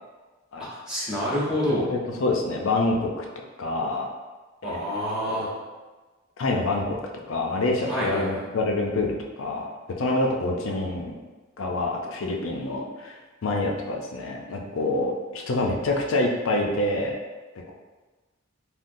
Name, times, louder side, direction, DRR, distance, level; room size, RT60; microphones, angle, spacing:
voice 1, 0.7-1.9 4.6-5.5 7.9-8.4, equal, 5° right, -9 dB, 0.7 m, -27 dB
voice 2, 1.9-3.2 3.6-4.1 4.6-5.0 5.3-5.6 6.4-7.0 7.3-9.7 10.0-11.1 11.6-17.1 17.7-17.8, left 2 dB, 70° left, 1 dB, 0.5 m, -27 dB
3.7 x 2.4 x 2.6 m, 1.3 s
head